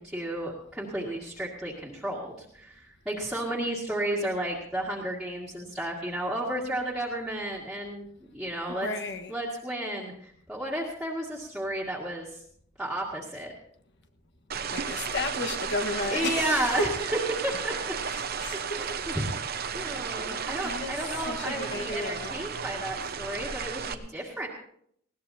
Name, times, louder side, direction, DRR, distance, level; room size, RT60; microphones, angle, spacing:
voice 1, 0.0-8.1 8.3-8.9 9.3-12.4 12.8-13.5 16.1-16.9 17.4-17.9 18.8-24.5, right 1 dB, 5° right, 2.0 m, -33 dB
voice 2, 8.7-9.3 14.7-16.9 18.0-19.0 20.6-22.5, left 2 dB, 65° left, 1.4 m, -34 dB
sound 1, 14.5-23.9, right 6 dB, 55° right, 0.9 m, -34 dB
20.0 x 17.0 x 2.8 m
head